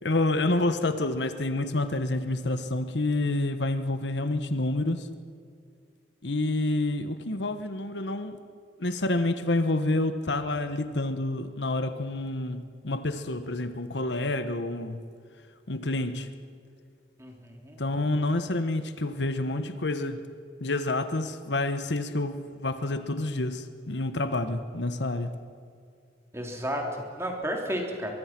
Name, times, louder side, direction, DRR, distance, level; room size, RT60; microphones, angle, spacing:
voice 1, 0.0-5.1 6.2-8.4 8.8-15.1 15.7-16.3 17.8-20.3 20.6-25.3, left 2 dB, 75° left, 1.3 m, -28 dB
voice 2, 17.2-17.8 26.3-28.1, equal, 15° right, 3.4 m, -32 dB
23.5 x 23.0 x 6.1 m
head